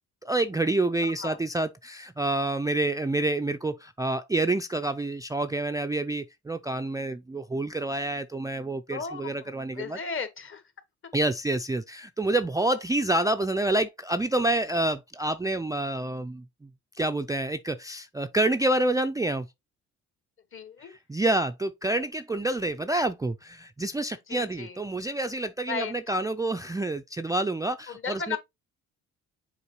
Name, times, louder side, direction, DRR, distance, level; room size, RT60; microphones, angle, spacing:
voice 1, 0.2-10.0 11.1-16.7 16.9-19.5 20.8-28.4, right 2 dB, 10° right, 0.4 m, -28 dB
voice 2, 1.0-1.4 8.9-10.6 20.5-20.9 24.3-24.8 25.7-25.9 27.9-28.4, left 5 dB, 45° left, 1.5 m, -35 dB
7.0 x 4.4 x 3.0 m
cardioid pair, 90°, 30 cm